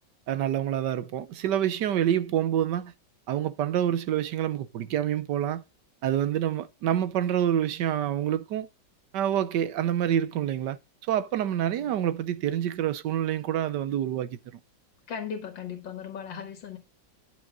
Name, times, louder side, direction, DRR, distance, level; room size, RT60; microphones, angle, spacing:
voice 1, 0.3-2.9 3.3-5.6 6.0-8.7 9.1-10.8 11.1-14.4, right 10 dB, 75° right, 1.4 m, -27 dB
voice 2, 15.1-16.8, left 7 dB, 85° left, 2.3 m, -37 dB
10.0 x 8.1 x 3.9 m
omnidirectional pair, 2.0 m